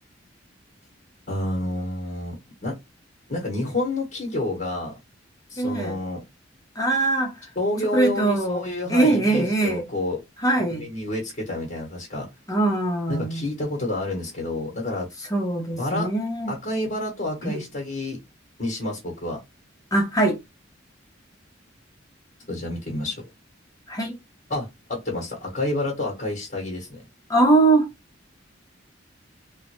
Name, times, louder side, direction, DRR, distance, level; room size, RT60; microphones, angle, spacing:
voice 1, 1.3-2.4 2.6-2.7 3.3-4.9 5.5-6.2 7.6-10.2 10.7-12.3 13.1-15.1 15.8-16.1 16.5-18.2 18.6-19.4 22.5-23.2 24.5-27.0, left 2 dB, 40° left, 1.1 m, -29 dB
voice 2, 5.6-6.0 6.8-7.5 7.9-8.6 8.9-9.9 10.4-10.9 12.5-13.5 15.2-16.5 17.4-17.6 19.9-20.4 23.9-24.2 27.3-27.9, right 2 dB, 20° left, 0.8 m, -22 dB
3.6 x 2.2 x 3.0 m
head